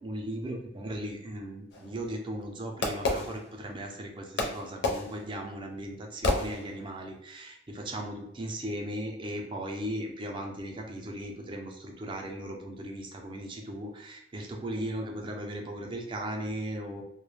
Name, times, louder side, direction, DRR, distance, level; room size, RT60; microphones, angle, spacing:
voice 1, 0.0-17.0, right 1 dB, 25° right, 1 dB, 0.4 m, -37 dB
Fireworks, 1.7-3.9 4.4-7.1, left 2 dB, 65° left, 0.5 m, -32 dB
2.3 x 2.1 x 3.1 m, 0.81 s
head